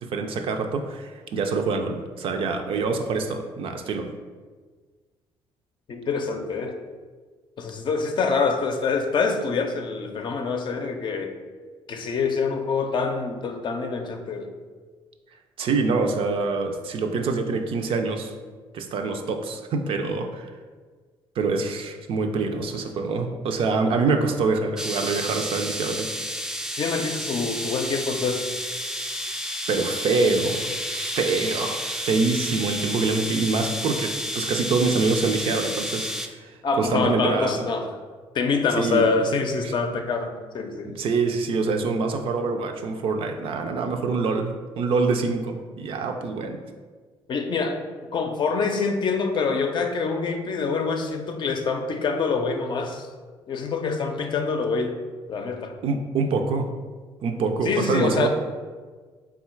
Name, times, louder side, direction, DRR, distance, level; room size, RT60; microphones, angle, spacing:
voice 1, 0.0-4.1 15.6-18.3 18.7-20.5 21.4-26.1 29.7-30.7 30.9-36.1 36.4-36.5 36.8-37.7 38.8-39.1 41.0-46.6 55.8-56.7 57.2-58.3, right 4 dB, 65° right, 5 dB, 0.5 m, -25 dB
voice 2, 5.9-6.8 7.6-11.3 11.9-14.5 26.8-28.4 36.6-37.9 38.3-40.9 47.3-47.8 48.1-53.1 53.5-55.0 55.3-55.7 57.6-58.3, left 4 dB, 50° left, 5 dB, 0.5 m, -25 dB
sound 1, 24.8-36.3, equal, 5° right, 0.4 m, -31 dB
3.7 x 2.4 x 4.4 m, 1.5 s
cardioid pair, 80°, 10 cm